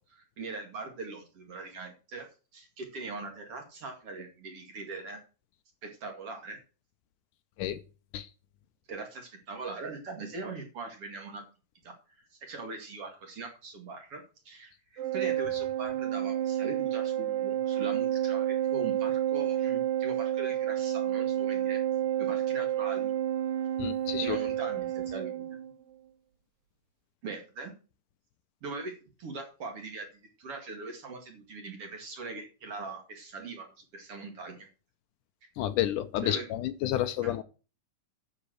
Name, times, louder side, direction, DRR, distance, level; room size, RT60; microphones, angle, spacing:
voice 1, 0.0-2.3 2.5-5.2 5.8-6.6 8.9-11.4 11.8-12.0 12.3-21.8 22.2-23.1 24.2-25.4 27.2-27.7 28.6-34.7 36.2-36.5 37.2-37.3, right 3 dB, 45° right, 2.8 m, -41 dB
Organ, 15.0-25.7, right 11 dB, 85° right, 1.3 m, -30 dB
voice 2, 23.8-24.4 35.6-37.4, left 12 dB, 75° left, 2.1 m, -30 dB
10.0 x 7.3 x 6.3 m
omnidirectional pair, 3.9 m